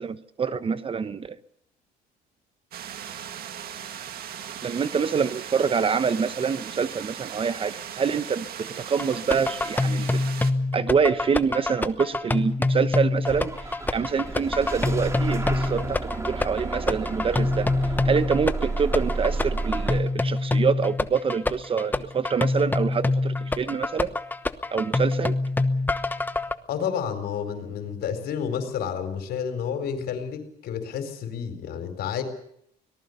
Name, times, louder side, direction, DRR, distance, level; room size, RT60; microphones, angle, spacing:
voice 1, 0.0-1.4 4.6-10.3 10.7-17.7 18.0-24.1 24.7-25.4, right 6 dB, 30° right, 14 dB, 1.0 m, -26 dB
sound 1, 2.7-10.5, right 9 dB, 65° right, 1.9 m, -38 dB
sound 2, 9.0-26.5, left 2 dB, 10° left, 1.0 m, -26 dB
Bus / Engine starting, 13.3-20.0, right 3 dB, 15° right, 2.1 m, -31 dB
voice 2, 26.7-32.2, left 7 dB, 70° left, 8 dB, 4.5 m, -30 dB
24.5 x 19.0 x 6.8 m, 0.71 s
cardioid pair, 110°, 17 cm